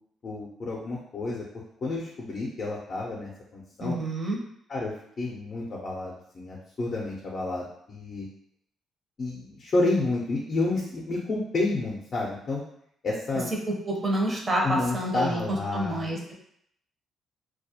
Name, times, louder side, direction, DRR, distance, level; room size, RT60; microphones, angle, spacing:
voice 1, 0.2-1.4 1.8-4.0 4.7-8.3 9.2-12.6 13.0-13.5 14.6-16.0, left 2 dB, 45° left, -3 dB, 0.5 m, -30 dB
voice 2, 3.8-4.4 13.8-16.3, right 1 dB, 30° right, -1 dB, 0.6 m, -28 dB
2.2 x 2.0 x 2.7 m, 0.71 s
cardioid pair, 90°, 0 cm